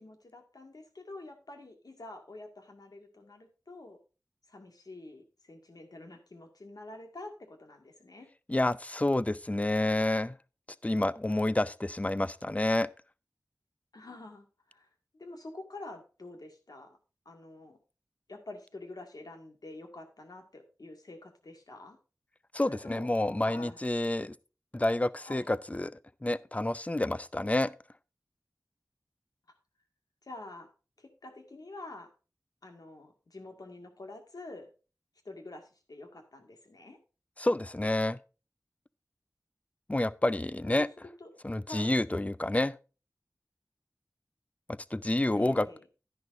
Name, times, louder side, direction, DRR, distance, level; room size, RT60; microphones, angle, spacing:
voice 1, 0.0-4.0 4.5-8.3 13.9-14.9 15.1-17.0 17.3-17.8 18.3-22.0 22.6-23.1 23.4-23.8 25.2-25.5 30.2-30.7 31.0-32.1 32.6-34.7 35.2-37.0 40.6-40.9 41.2-41.3 41.7-41.9 45.4-45.8, left 2 dB, 80° left, 2.0 m, -47 dB
voice 2, 8.5-10.4 10.8-12.9 22.5-24.4 24.7-25.9 26.2-27.7 37.4-38.2 39.9-40.9 41.4-42.8 44.9-45.7, left 1 dB, 20° left, 0.5 m, -29 dB
11.5 x 10.5 x 2.6 m
wide cardioid pair, 60°, 6 cm